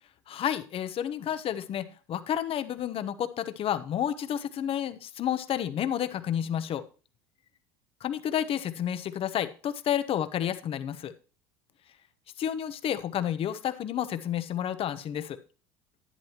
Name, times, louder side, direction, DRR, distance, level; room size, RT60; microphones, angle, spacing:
voice 1, 0.3-6.8 8.0-11.1 12.4-15.4, left 10 dB, 45° left, 12 dB, 0.9 m, -30 dB
11.0 x 10.0 x 3.0 m, 0.37 s
hypercardioid pair, 75°, 13 cm